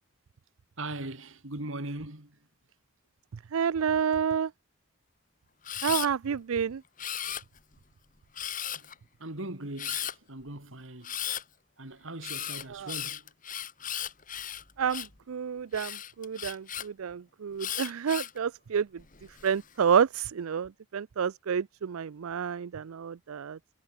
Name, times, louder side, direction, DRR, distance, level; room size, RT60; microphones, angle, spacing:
voice 1, 0.8-2.4 8.7-8.9 9.2-11.1 11.8-13.3, right 2 dB, 70° right, 3.0 m, -40 dB
voice 2, 3.5-4.5 5.8-6.8 12.7-12.9 14.8-18.9 19.4-23.6, right 7 dB, 85° right, 0.5 m, -29 dB
Camera, 5.6-6.1 7.0-7.7 8.4-8.9 9.8-10.1 11.0-11.4 12.2-15.2 15.7-16.9 17.6-18.4 19.0-19.5, left 10 dB, 40° left, 2.9 m, -36 dB
head